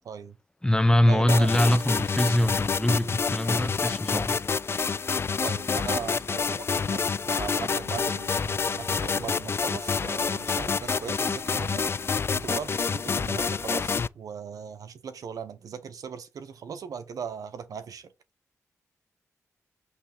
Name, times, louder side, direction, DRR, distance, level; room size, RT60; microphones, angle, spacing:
voice 1, 0.0-0.4 1.1-1.5 5.4-11.9 12.3-18.1, right 7 dB, 75° right, 0.9 m, -38 dB
voice 2, 0.6-4.4, left 1 dB, 10° left, 1.0 m, -23 dB
sound 1, 1.3-14.1, left 5 dB, 40° left, 0.3 m, -28 dB
8.3 x 3.3 x 5.9 m
cardioid pair, 50°, 6 cm